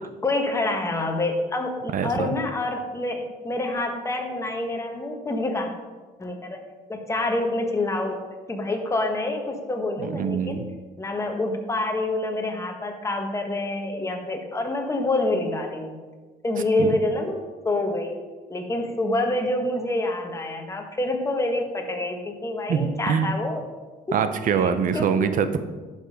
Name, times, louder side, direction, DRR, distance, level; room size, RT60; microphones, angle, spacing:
voice 1, 0.2-5.7 6.2-6.6 6.9-8.2 8.5-10.6 11.0-16.0 16.4-18.2 18.5-23.6 24.1-24.2 24.6-25.3, left 2 dB, 15° left, 3 dB, 1.5 m, -27 dB
voice 2, 1.9-2.3 10.0-10.7 16.8-17.0 22.7-23.3 24.1-25.6, right 7 dB, 55° right, 10 dB, 0.8 m, -24 dB
11.5 x 5.4 x 5.2 m, 1.3 s
cardioid pair, 110°, 17 cm